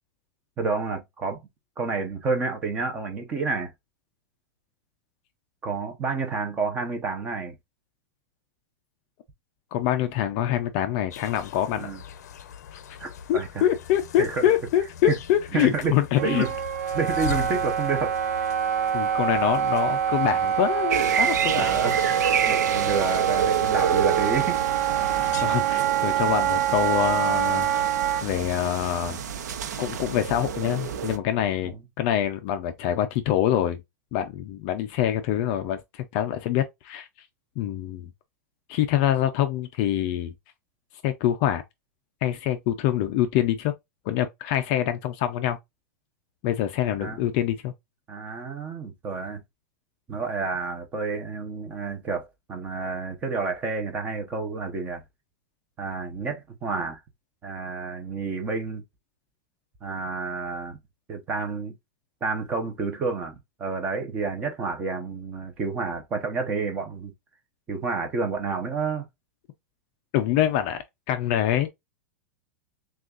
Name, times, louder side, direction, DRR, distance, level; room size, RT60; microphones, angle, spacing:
voice 1, 0.6-1.4 1.8-3.7 5.6-7.6 11.7-12.0 13.0-13.7 14.2-14.5 15.1-15.2 15.5-16.5 16.9-18.2 21.5-22.1 22.4-24.6 31.6-31.8 47.0-47.2 48.1-49.4 50.1-55.0 55.8-57.0 57.4-58.8 59.8-60.8 61.1-61.7 62.2-67.1 67.7-69.1, right 4 dB, 15° right, 0.7 m, -29 dB
voice 2, 9.7-11.9 12.7-12.8 13.3-16.5 18.9-21.8 25.4-27.7 28.2-29.2 29.8-33.8 34.1-37.1 37.6-38.1 38.7-40.3 41.0-41.6 42.2-43.7 44.1-45.6 46.4-47.7 70.1-71.7, left 11 dB, 30° left, 0.4 m, -25 dB
sound 1, 11.1-25.4, left 7 dB, 75° left, 0.6 m, -41 dB
Wind instrument woodwind instrument, 16.2-28.2, right 10 dB, 60° right, 0.4 m, -25 dB
sound 2, 20.9-31.2, right 7 dB, 90° right, 0.7 m, -29 dB
6.2 x 2.4 x 2.4 m
supercardioid pair, 175°, 9 cm